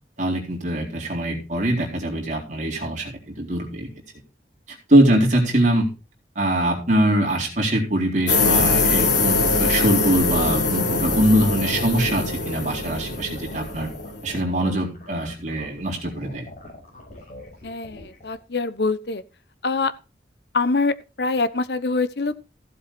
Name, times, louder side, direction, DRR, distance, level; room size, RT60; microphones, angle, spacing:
voice 1, 0.2-3.9 4.9-5.9 6.4-13.9 14.2-16.5, right 1 dB, 45° right, -1 dB, 3.9 m, -22 dB
sound 1, 8.3-14.4, left 3 dB, 85° left, 3.2 m, -22 dB
sound 2, 12.9-18.3, left 1 dB, 45° left, 6.7 m, -43 dB
voice 2, 17.6-19.2 19.6-19.9 20.5-22.4, left 3 dB, 70° left, 14 dB, 0.9 m, -24 dB
15.5 x 7.7 x 4.3 m, 0.31 s
head